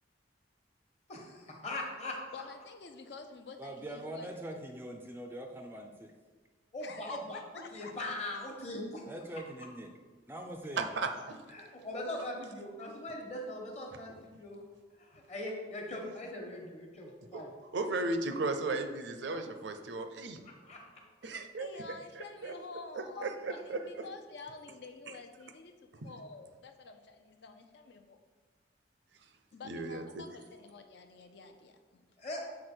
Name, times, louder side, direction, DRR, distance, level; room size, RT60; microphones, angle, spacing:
voice 1, 1.1-2.2 6.7-7.4 7.7-9.0 11.5-14.6 15.0-17.5 19.3-19.4 20.4-21.0 23.2-23.6 32.2-32.4, left 1 dB, 35° left, 0 dB, 1.2 m, -41 dB
voice 2, 2.3-4.7 6.8-8.1 21.6-28.2 29.5-32.0, left 3 dB, 65° left, 6 dB, 0.5 m, -49 dB
voice 3, 3.6-5.9 9.1-9.9 10.3-10.9, right 1 dB, 10° right, 3 dB, 0.4 m, -43 dB
voice 4, 10.8-11.4 17.3-17.4 17.7-20.4 21.2-21.7 22.4-22.5 22.9-24.1 26.0-26.1 29.6-30.2, right 3 dB, 70° right, 7 dB, 0.5 m, -35 dB
6.6 x 4.0 x 4.4 m, 1.4 s
head